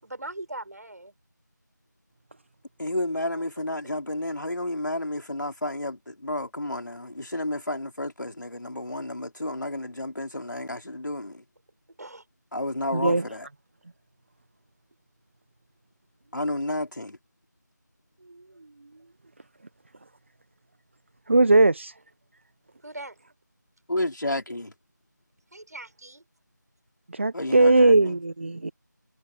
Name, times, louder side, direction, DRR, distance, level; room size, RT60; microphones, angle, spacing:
voice 1, 0.0-1.1 3.3-3.7 12.0-12.2 22.8-23.2 25.5-26.2, right 2 dB, 60° right, 7.1 m, -40 dB
voice 2, 2.8-11.4 12.5-13.5 16.3-17.2 23.9-24.7 27.3-28.2, left 1 dB, 80° left, 3.4 m, -31 dB
voice 3, 12.9-13.2 21.3-21.9 27.1-28.7, right 2 dB, 40° right, 1.1 m, -19 dB
figure-of-eight pair, 170°, 10 cm